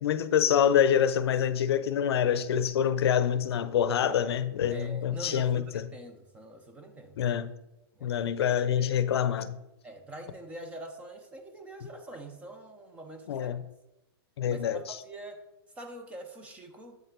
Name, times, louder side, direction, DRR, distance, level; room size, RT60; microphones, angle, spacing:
voice 1, 0.0-5.8 7.2-7.5 8.0-9.5 13.3-13.6 14.4-15.0, left 9 dB, 80° left, 0.5 m, -26 dB
voice 2, 4.7-7.2 8.0-8.3 8.6-9.0 9.8-13.5 14.5-15.5 15.8-17.0, right 1 dB, 10° right, 0.6 m, -44 dB
7.6 x 5.5 x 3.7 m
supercardioid pair, 160°, 13 cm